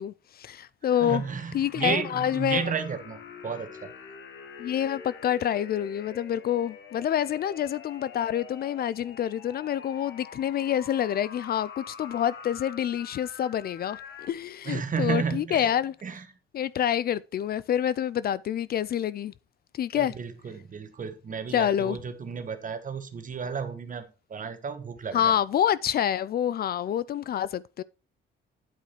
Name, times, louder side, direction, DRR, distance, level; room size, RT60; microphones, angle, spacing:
voice 1, 0.0-1.2 1.5-2.7 4.6-14.0 14.3-15.9 16.5-19.3 19.7-20.1 21.5-22.0 25.1-27.8, left 10 dB, 50° left, 0.4 m, -27 dB
sound 1, 0.9-14.3, left 6 dB, 65° left, 1.3 m, -45 dB
voice 2, 1.0-3.9 14.6-15.7 16.0-16.2 19.9-25.3, right 6 dB, 40° right, 1.3 m, -32 dB
9.3 x 4.9 x 4.4 m
cardioid pair, 90°, 20 cm